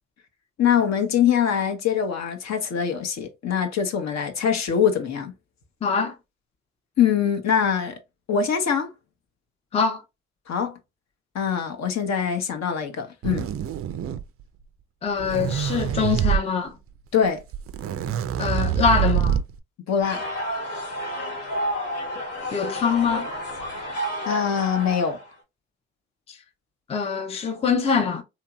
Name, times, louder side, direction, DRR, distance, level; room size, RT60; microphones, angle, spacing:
voice 1, 0.6-5.3 7.0-8.0 8.3-8.9 10.5-10.8 11.3-13.4 17.1-17.4 19.9-20.2 24.3-25.2, left 8 dB, 55° left, 0.9 m, -23 dB
voice 2, 5.8-6.1 9.7-10.0 15.0-16.8 18.4-19.4 22.5-23.3 26.3-26.4 26.9-28.2, left 5 dB, 20° left, 0.5 m, -23 dB
sound 1, 13.2-14.4 15.1-16.4 17.3-17.4 17.5-19.6, right 9 dB, 45° right, 0.4 m, -25 dB
sound 2, 20.0-25.3, equal, 90° left, 1.7 m, -31 dB
2.9 x 2.7 x 2.3 m
supercardioid pair, 65°, 33 cm